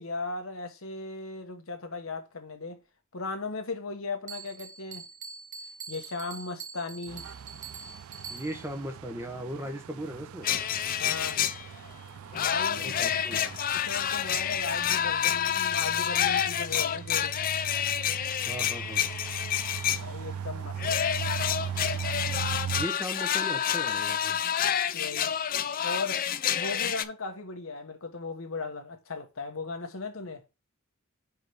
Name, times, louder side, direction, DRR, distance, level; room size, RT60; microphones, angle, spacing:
voice 1, 0.0-2.8 3.1-5.0 5.9-7.3 11.0-11.4 12.4-17.4 20.0-20.8 24.9-25.3 25.8-30.4, left 3 dB, 80° left, 1.2 m, -37 dB
Bell, 4.3-8.8, right 6 dB, 40° right, 0.6 m, -44 dB
sound 1, 7.1-22.9, right 8 dB, 80° right, 0.3 m, -39 dB
voice 2, 8.3-10.5 12.8-13.6 18.5-19.1 22.7-24.4, right 1 dB, 10° right, 1.0 m, -37 dB
sound 2, 10.4-11.9 12.3-20.0 20.8-27.0, left 9 dB, 45° left, 0.4 m, -28 dB
5.0 x 4.7 x 4.8 m
head